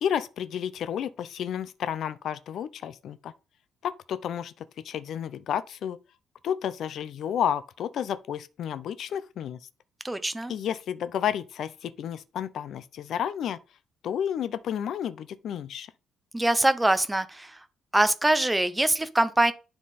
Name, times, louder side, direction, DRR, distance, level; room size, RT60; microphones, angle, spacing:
voice 1, 0.0-3.3 3.8-6.0 6.4-9.6 10.5-13.6 14.0-15.9, left 9 dB, 55° left, 0.5 m, -31 dB
voice 2, 10.0-10.5 16.3-17.6 17.9-19.5, right 1 dB, 5° right, 0.6 m, -23 dB
10.0 x 3.7 x 4.1 m
cardioid pair, 165°, 0 cm